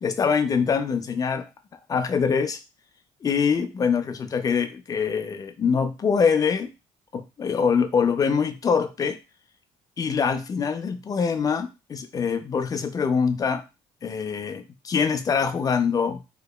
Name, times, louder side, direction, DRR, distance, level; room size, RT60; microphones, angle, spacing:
voice 1, 0.0-1.5 1.9-2.6 3.2-6.7 7.1-9.2 10.0-13.7 14.0-16.2, left 6 dB, 30° left, 0.4 m, -24 dB
2.8 x 2.0 x 2.3 m
supercardioid pair, 75°, 11 cm